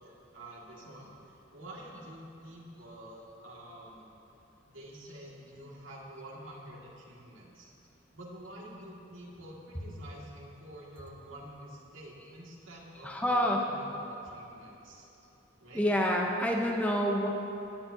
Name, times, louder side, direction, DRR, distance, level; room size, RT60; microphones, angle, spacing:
voice 1, 0.0-4.1 4.7-7.7 8.1-15.1 15.6-15.9, right 1 dB, 90° right, -4 dB, 2.2 m, -48 dB
voice 2, 13.0-13.6 15.7-17.3, equal, 10° left, 0 dB, 0.8 m, -27 dB
17.5 x 11.0 x 2.8 m, 2.9 s
head